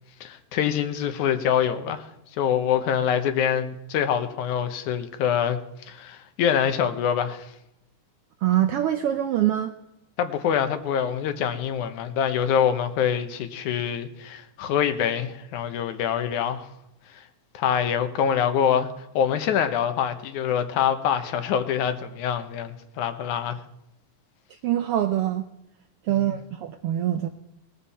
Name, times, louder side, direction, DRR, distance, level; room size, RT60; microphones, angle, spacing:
voice 1, 0.2-2.1 2.4-5.6 5.9-7.5 10.2-16.7 17.5-18.9 19.1-23.6 26.1-26.4, left 8 dB, 85° left, 9 dB, 2.5 m, -25 dB
voice 2, 8.4-9.7 24.6-25.4 26.0-27.3, right 12 dB, 90° right, 8 dB, 1.3 m, -24 dB
19.5 x 13.0 x 4.3 m, 0.85 s
omnidirectional pair, 3.4 m